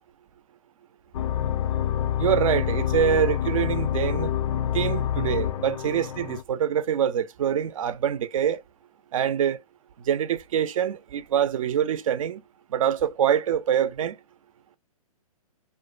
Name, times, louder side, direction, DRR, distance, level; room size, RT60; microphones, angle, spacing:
sound 1, 1.1-6.4, left 10 dB, 60° left, 0.4 m, -27 dB
voice 1, 2.2-4.3 4.7-8.6 9.1-9.6 10.1-12.4 12.7-14.2, right 9 dB, 60° right, 0.5 m, -25 dB
2.5 x 2.1 x 2.3 m
hypercardioid pair, 135°, 19 cm